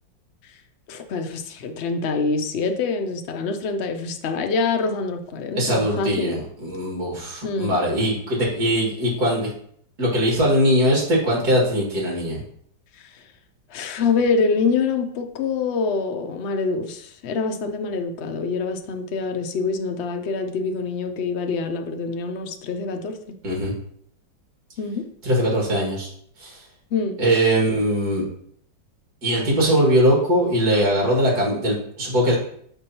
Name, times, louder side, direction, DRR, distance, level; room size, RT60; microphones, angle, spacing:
voice 1, 0.9-6.4 7.4-7.8 13.0-13.1 13.7-23.2 24.8-25.1 26.9-27.2, left 4 dB, 85° left, 6 dB, 0.5 m, -25 dB
voice 2, 5.6-9.5 10.0-12.4 23.4-23.7 25.2-26.1 26.4-26.6 27.2-28.2 29.2-32.4, equal, 55° right, -3 dB, 2.6 m, -21 dB
6.9 x 5.3 x 2.8 m, 0.66 s
omnidirectional pair, 2.0 m